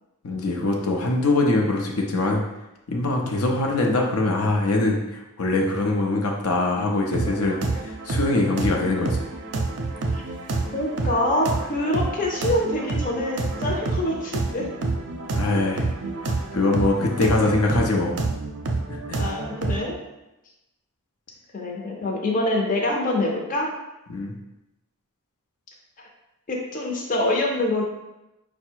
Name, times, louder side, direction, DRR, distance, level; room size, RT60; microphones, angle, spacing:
voice 1, 0.2-2.4 2.9-9.2 15.3-15.8 16.5-18.2 18.9-19.2 24.1-24.4, left 2 dB, 75° left, 0 dB, 0.7 m, -23 dB
sound 1, 7.1-19.9, right 3 dB, 55° right, 0.5 m, -28 dB
voice 2, 10.7-14.7 19.1-20.0 21.5-23.7 26.5-27.8, left 1 dB, 35° left, -1 dB, 0.7 m, -25 dB
4.9 x 2.2 x 4.5 m, 0.94 s
head